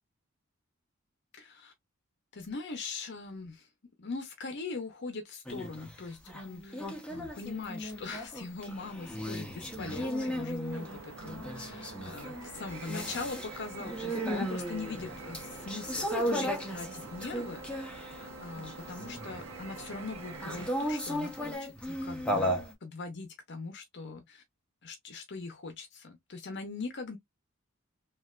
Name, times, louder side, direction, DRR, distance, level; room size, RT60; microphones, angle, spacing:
voice 1, 1.3-1.7 2.3-3.7 4.0-17.8 18.2-24.4 24.8-27.2, left 3 dB, 55° left, 0.7 m, -41 dB
sound 1, 5.5-5.9 6.3-18.2 18.6-19.5 20.4-22.7, equal, 5° left, 0.8 m, -35 dB
sound 2, 10.7-20.7, right 4 dB, 70° right, 0.6 m, -47 dB
sound 3, 12.6-21.6, equal, 10° right, 1.2 m, -51 dB
3.2 x 2.5 x 2.4 m
head